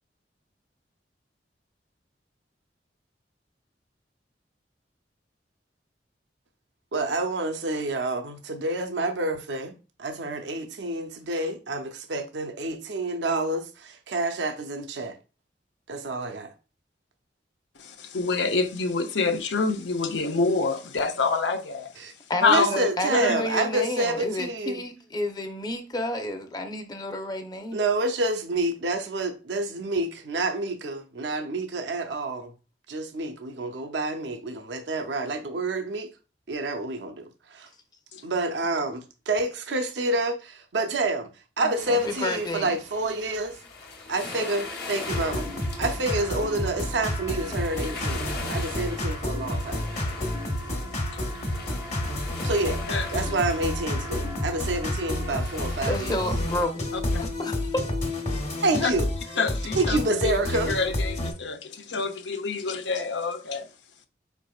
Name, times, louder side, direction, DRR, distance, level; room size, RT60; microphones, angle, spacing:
voice 1, 6.9-15.2 15.9-16.5 22.0-22.1 22.5-24.8 27.7-32.5 32.9-36.1 36.5-37.7 38.2-41.3 41.6-43.6 44.1-49.9 52.4-52.8 53.1-56.2 58.6-59.1 59.8-60.7, right 2 dB, 75° right, 0.6 m, -28 dB
voice 2, 17.8-21.9 22.4-22.8 23.1-23.4 38.1-38.2 41.6-41.7 52.9-53.1 57.1-57.2 58.7-58.9 59.4-60.3 60.7-63.7, left 4 dB, 80° left, 0.7 m, -27 dB
voice 3, 22.3-27.8 41.9-42.8 55.8-56.9 57.2-57.8, left 1 dB, 25° left, 0.7 m, -30 dB
sound 1, 41.8-56.7, left 3 dB, 60° left, 1.1 m, -41 dB
sound 2, 43.9-56.6, left 1 dB, 15° right, 0.6 m, -43 dB
sound 3, 45.1-61.3, left 1 dB, 40° left, 1.1 m, -30 dB
5.0 x 4.6 x 2.3 m
head